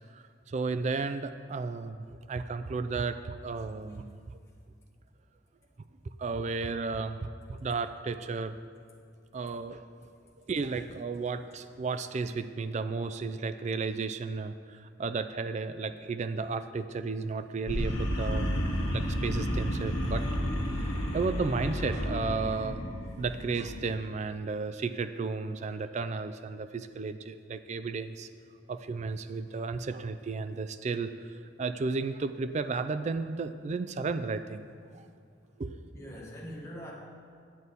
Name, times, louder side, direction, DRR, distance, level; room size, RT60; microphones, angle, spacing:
voice 1, 0.1-4.2 6.2-8.6 9.3-9.9 10.4-18.5 18.9-20.3 20.7-22.8 23.2-28.3 28.7-34.6 34.9-35.1 35.6-35.9, right 4 dB, 35° right, 11 dB, 0.3 m, -33 dB
sound 1, 17.7-23.9, equal, 85° left, 1.2 m, -31 dB
voice 2, 35.9-36.9, equal, 15° left, -6 dB, 1.6 m, -43 dB
9.4 x 8.3 x 4.1 m, 2.2 s
head